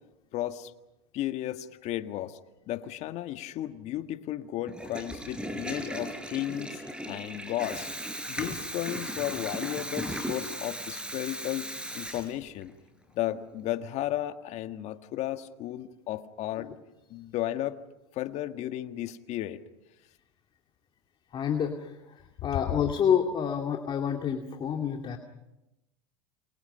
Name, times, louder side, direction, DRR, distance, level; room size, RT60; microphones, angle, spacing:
voice 1, 0.3-0.7 1.1-2.4 2.7-6.8 7.1-7.9 8.2-11.7 11.9-12.7 13.1-16.7 17.1-17.8 18.1-19.6 22.5-22.7, left 13 dB, 50° left, 9 dB, 1.7 m, -34 dB
Water tap faucet / Toilet flush, 4.7-12.7, right 1 dB, 5° right, 5.3 m, -37 dB
voice 2, 21.3-21.9 22.4-25.2, left 8 dB, 35° left, 4 dB, 2.4 m, -28 dB
29.5 x 27.0 x 5.7 m, 0.92 s
hypercardioid pair, 95°, 14 cm